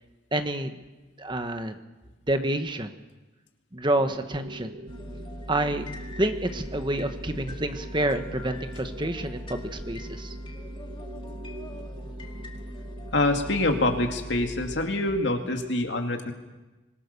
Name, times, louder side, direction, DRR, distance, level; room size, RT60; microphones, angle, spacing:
voice 1, 0.3-0.7 1.2-1.8 2.3-2.9 3.7-4.7 5.5-5.8 6.2-10.3, right 1 dB, 25° right, 7 dB, 1.4 m, -28 dB
sound 1, 3.9-13.6, right 1 dB, 50° right, 1.4 m, -44 dB
sound 2, 4.9-14.8, equal, 25° left, 2.5 m, -40 dB
voice 2, 13.1-16.3, left 2 dB, 70° left, 4 dB, 2.5 m, -25 dB
24.5 x 21.5 x 6.8 m, 1.1 s
head